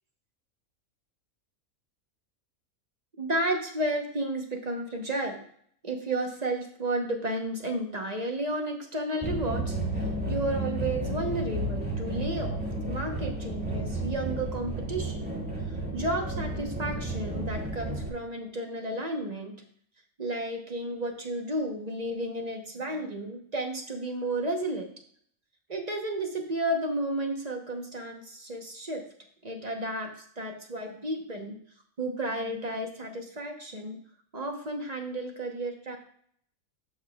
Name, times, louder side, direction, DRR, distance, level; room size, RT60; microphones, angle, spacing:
voice 1, 3.2-5.4 5.8-9.8 10.3-12.6 12.9-15.3 15.7-19.5 20.2-24.9 25.7-29.0 29.4-30.1 30.4-31.5 32.0-34.0 34.3-36.0, right 1 dB, 35° right, 3 dB, 0.9 m, -32 dB
sound 1, 9.2-18.1, right 1 dB, 5° right, 1.6 m, -32 dB
12.0 x 5.6 x 2.3 m, 0.62 s
omnidirectional pair, 1.5 m